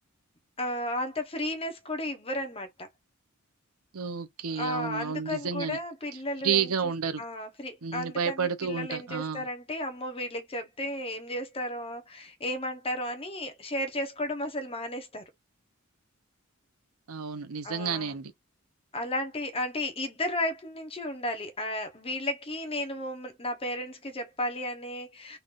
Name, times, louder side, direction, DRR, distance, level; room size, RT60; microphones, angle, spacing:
voice 1, 0.6-2.9 4.5-6.9 7.2-15.2 17.6-18.2 18.9-25.4, left 1 dB, 25° left, 1.1 m, -34 dB
voice 2, 3.9-5.8 6.4-7.2 7.8-9.4 17.1-18.3, right 6 dB, 80° right, 0.8 m, -30 dB
3.9 x 3.3 x 2.6 m
head